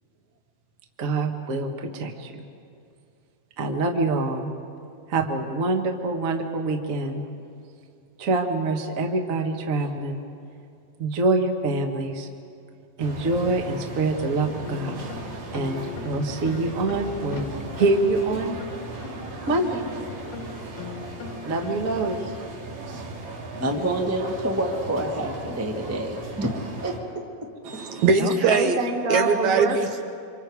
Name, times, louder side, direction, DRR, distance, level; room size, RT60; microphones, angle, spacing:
voice 1, 1.0-2.5 3.6-4.5 5.1-7.3 8.2-10.2 11.0-12.3 13.0-15.0 15.5-17.4 17.8-18.6 19.5-19.9 21.4-22.2 28.2-29.8, right 2 dB, 40° right, 3 dB, 1.1 m, -25 dB
sound 1, 13.0-27.0, right 2 dB, 85° right, 4.4 m, -37 dB
sound 2, 14.4-22.4, left 7 dB, 85° left, 3.0 m, -40 dB
voice 2, 23.6-27.0, right 1 dB, 10° right, 0 dB, 0.6 m, -27 dB
voice 3, 27.7-28.8 29.1-30.0, right 4 dB, 70° right, 5 dB, 2.1 m, -21 dB
28.5 x 25.5 x 4.9 m, 2.4 s
omnidirectional pair, 3.9 m